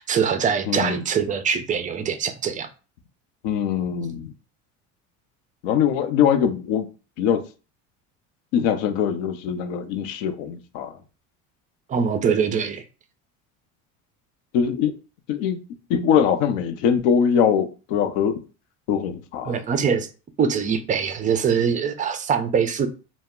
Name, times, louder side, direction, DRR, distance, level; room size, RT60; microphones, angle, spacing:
voice 1, 0.0-2.7 11.9-12.8 19.4-20.1 20.4-22.9, right 7 dB, 20° right, 0.3 m, -23 dB
voice 2, 0.7-1.0 3.4-4.3 5.6-6.9 7.2-7.4 8.5-11.0 14.5-14.9 15.3-15.6 15.9-18.4 18.9-19.6, left 8 dB, 70° left, 0.6 m, -22 dB
2.1 x 2.0 x 3.5 m
hypercardioid pair, 80°, 39 cm